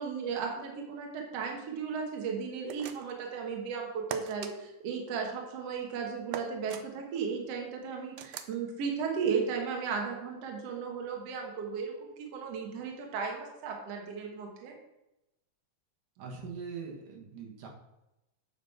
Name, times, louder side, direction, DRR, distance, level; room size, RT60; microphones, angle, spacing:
voice 1, 0.0-14.8, right 6 dB, 55° right, 1 dB, 2.1 m, -35 dB
sound 1, 2.7-3.2 4.1-4.5 6.3-6.8 8.2-8.6, right 9 dB, 90° right, 1.5 m, -40 dB
voice 2, 16.2-17.7, right 5 dB, 70° right, -1 dB, 3.1 m, -42 dB
8.8 x 5.1 x 5.8 m, 0.92 s
omnidirectional pair, 3.9 m